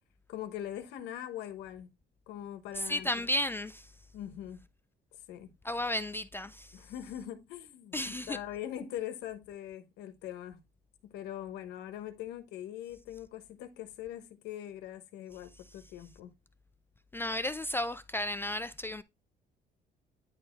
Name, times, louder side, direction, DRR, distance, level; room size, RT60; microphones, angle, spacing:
voice 1, 0.3-1.9 2.3-3.1 4.1-4.6 5.3-5.5 6.7-10.6 11.0-16.3, left 11 dB, 85° left, 1.2 m, -42 dB
voice 2, 2.8-3.9 5.6-6.8 7.9-8.4 17.1-19.0, left 1 dB, 15° left, 0.3 m, -33 dB
9.6 x 4.2 x 3.2 m
cardioid pair, 110°, 17 cm